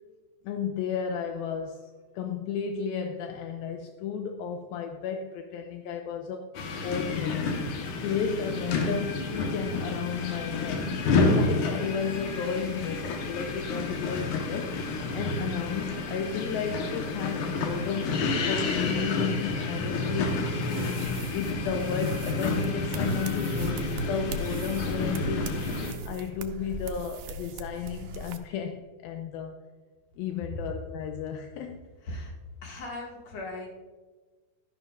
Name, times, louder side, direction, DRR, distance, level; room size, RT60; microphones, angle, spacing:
voice 1, 0.4-6.5 6.8-7.5 8.0-14.8 15.1-18.1 18.5-20.4 21.3-25.5 26.0-29.6 30.2-31.9, left 7 dB, 80° left, 2.4 m, -33 dB
sound 1, 6.5-25.9, left 3 dB, 65° left, 2.5 m, -30 dB
sound 2, 20.3-28.4, right 3 dB, 75° right, 2.0 m, -40 dB
voice 2, 32.0-32.3 32.6-33.7, left 1 dB, 50° left, 3.0 m, -38 dB
12.0 x 11.0 x 2.6 m
omnidirectional pair, 4.4 m